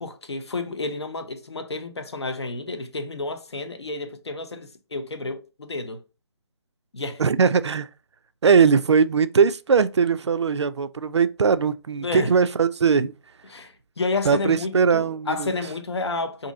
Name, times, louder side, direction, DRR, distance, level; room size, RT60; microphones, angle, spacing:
voice 1, 0.0-6.0 6.9-7.2 12.0-12.3 12.8-13.0 13.5-16.5, left 3 dB, 75° left, 0.8 m, -30 dB
voice 2, 7.2-7.9 8.4-13.1 14.3-15.5, right 6 dB, 80° right, 0.4 m, -20 dB
2.7 x 2.7 x 3.8 m
figure-of-eight pair, 145°, 14 cm